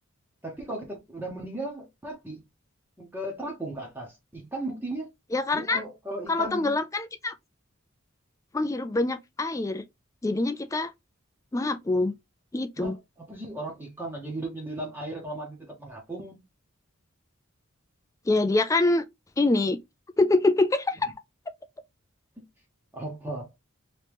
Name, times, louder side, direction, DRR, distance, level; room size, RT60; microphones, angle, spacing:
voice 1, 0.4-2.4 3.0-5.1 5.5-6.8 12.8-16.4 22.4-22.5 22.9-23.5, right 1 dB, 10° right, 0.8 m, -36 dB
voice 2, 5.3-5.8 6.3-7.3 8.5-9.8 10.2-10.9 11.5-12.1 12.5-12.9 18.3-19.0 19.4-19.8 20.2-21.1, left 2 dB, 15° left, 0.3 m, -25 dB
3.0 x 2.9 x 3.3 m
head